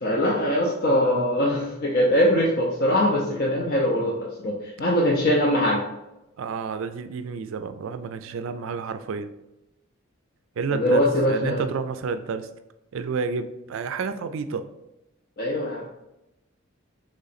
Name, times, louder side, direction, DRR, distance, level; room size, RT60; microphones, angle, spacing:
voice 1, 0.0-5.8 10.7-11.6 15.4-15.8, equal, 45° left, -2 dB, 0.5 m, -22 dB
voice 2, 6.4-9.3 10.6-12.5 12.9-14.7, right 5 dB, 60° right, 10 dB, 0.4 m, -30 dB
3.8 x 3.2 x 4.1 m, 0.93 s
head